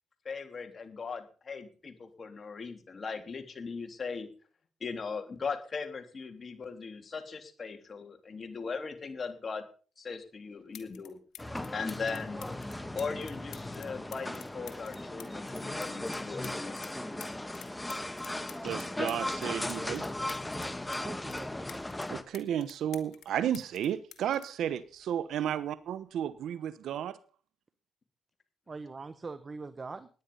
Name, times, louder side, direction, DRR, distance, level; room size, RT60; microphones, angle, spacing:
voice 1, 0.2-4.3 4.8-9.6 10.0-11.2 11.7-12.5 12.9-16.8, left 5 dB, 40° left, 6 dB, 3.3 m, -39 dB
sound 1, 10.2-10.3 10.7-11.1 11.3-16.9 17.2-21.0 21.3-23.3 23.5-25.4 26.3-26.5, left 10 dB, 70° left, 2.1 m, -50 dB
sound 2, 11.4-22.2, left 1 dB, 10° left, 1.6 m, -37 dB
voice 2, 18.6-20.0 22.1-27.2, right 10 dB, 75° right, 16 dB, 1.0 m, -33 dB
voice 3, 20.9-21.6 25.5-25.6 28.7-30.1, right 4 dB, 30° right, 13 dB, 1.2 m, -42 dB
17.5 x 10.5 x 5.5 m, 0.39 s
cardioid pair, 90°, 0 cm